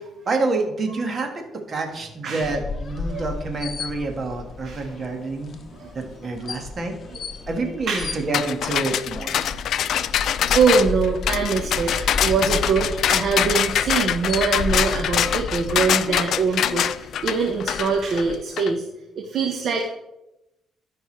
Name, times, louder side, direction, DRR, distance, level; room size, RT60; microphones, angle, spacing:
voice 1, 0.2-5.6 5.9-7.0 7.5-9.4, right 3 dB, 45° right, 4 dB, 1.7 m, -27 dB
voice 2, 2.2-2.5 3.1-3.2 4.6-4.9 5.1-5.3 5.7-5.9 6.3-6.4 7.1-7.4 7.9-8.2 10.1-10.2 10.5-18.9 19.2-19.9, right 5 dB, 65° right, 2 dB, 1.1 m, -23 dB
sound 1, 2.4-18.3, left 3 dB, 50° left, 0.9 m, -34 dB
sound 2, 8.3-18.7, left 10 dB, 70° left, 0.4 m, -24 dB
13.0 x 5.4 x 3.2 m, 0.90 s
cardioid pair, 90°, 0 cm